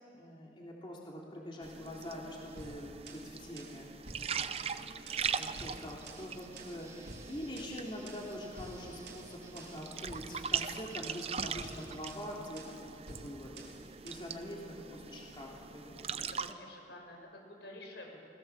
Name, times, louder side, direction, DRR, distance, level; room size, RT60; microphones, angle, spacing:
voice 1, 0.1-4.7 5.1-13.7 14.0-16.2, equal, 30° left, -3 dB, 3.1 m, -45 dB
sound 1, 1.6-16.5, right 6 dB, 35° right, 0.6 m, -41 dB
sound 2, 2.6-14.4, right 2 dB, 70° right, 3.3 m, -52 dB
sound 3, 5.3-12.2, right 2 dB, 15° right, 1.3 m, -57 dB
voice 2, 16.2-18.2, left 1 dB, 80° left, 1 dB, 5.4 m, -50 dB
29.5 x 20.5 x 7.1 m, 2.9 s
head